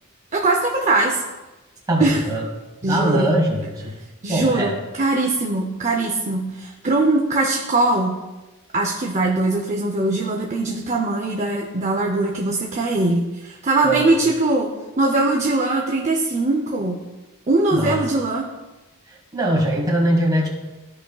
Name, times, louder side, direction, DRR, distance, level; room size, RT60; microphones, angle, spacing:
voice 1, 0.3-1.2 2.0-2.2 2.8-3.3 4.2-4.7 5.0-8.1 8.7-14.7 15.0-17.0 17.5-18.4, right 2 dB, 35° right, 0 dB, 0.6 m, -21 dB
voice 2, 1.9-2.5 2.8-3.9 4.3-4.7 13.8-14.1 17.7-18.0 19.1-20.5, right 1 dB, 20° right, -2 dB, 1.7 m, -21 dB
13.5 x 5.2 x 2.4 m, 1.1 s
head